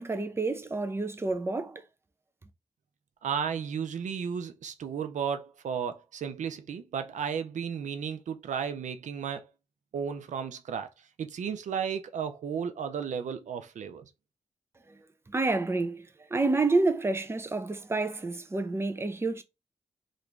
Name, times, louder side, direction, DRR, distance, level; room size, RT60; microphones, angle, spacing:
voice 1, 0.0-1.8 14.9-15.0 15.3-19.4, right 3 dB, 20° right, 0.5 m, -29 dB
voice 2, 3.2-9.5 9.9-14.1, right 7 dB, 85° right, 0.4 m, -34 dB
2.9 x 2.5 x 3.3 m
wide cardioid pair, 90°, 12 cm